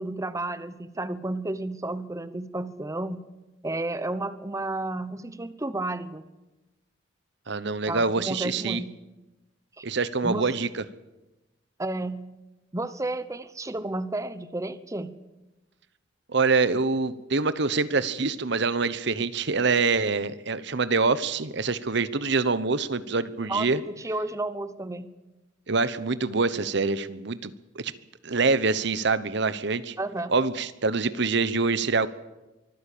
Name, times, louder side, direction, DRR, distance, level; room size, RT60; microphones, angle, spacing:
voice 1, 0.0-3.2 3.6-6.2 7.9-9.0 9.8-9.9 10.2-10.5 11.8-12.4 12.7-15.1 23.5-25.1 30.0-30.3, right 2 dB, 15° right, 13 dB, 0.8 m, -32 dB
voice 2, 7.5-8.8 9.8-10.8 16.3-23.8 25.7-27.9 28.2-29.9 30.3-32.1, right 4 dB, 65° right, 15 dB, 1.0 m, -25 dB
24.5 x 15.0 x 8.6 m, 1.0 s
head